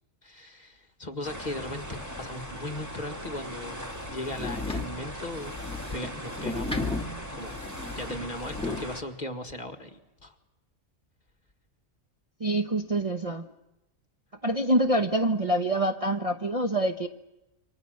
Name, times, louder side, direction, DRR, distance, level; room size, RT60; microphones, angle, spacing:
voice 1, 0.2-7.6 8.0-10.4, left 1 dB, 30° left, 7 dB, 1.9 m, -38 dB
sound 1, 1.2-9.0, equal, 10° right, 2.4 m, -40 dB
sound 2, 3.9-8.9, left 3 dB, 5° left, 1.8 m, -35 dB
voice 2, 12.4-13.5 14.4-17.1, right 1 dB, 30° right, 4 dB, 1.0 m, -26 dB
28.5 x 24.5 x 6.5 m, 0.97 s
omnidirectional pair, 1.4 m